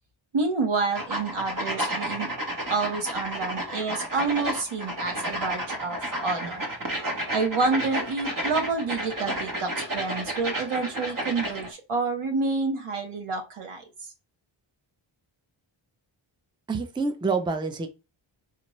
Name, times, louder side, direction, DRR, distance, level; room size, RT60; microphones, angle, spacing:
voice 1, 0.3-2.3 2.7-6.7 7.3-13.8, right 4 dB, 85° right, 1.1 m, -28 dB
sound 1, 0.9-11.7, right 1 dB, 40° right, 1.0 m, -31 dB
voice 2, 16.7-17.9, right 4 dB, 10° right, 0.4 m, -27 dB
4.2 x 2.5 x 3.0 m
wide cardioid pair, 130°, 49 cm